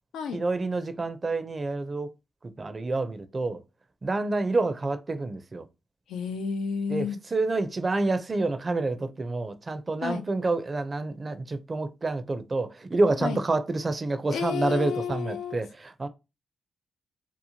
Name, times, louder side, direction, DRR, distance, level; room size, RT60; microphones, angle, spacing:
voice 1, 0.3-2.1 2.6-3.6 4.0-5.7 6.9-16.1, right 2 dB, 40° right, 0.5 m, -28 dB
voice 2, 6.1-7.2 10.0-10.2 13.2-13.4 14.3-15.6, left 6 dB, 85° left, 0.4 m, -31 dB
2.8 x 2.1 x 2.8 m
supercardioid pair, 50°, 0 cm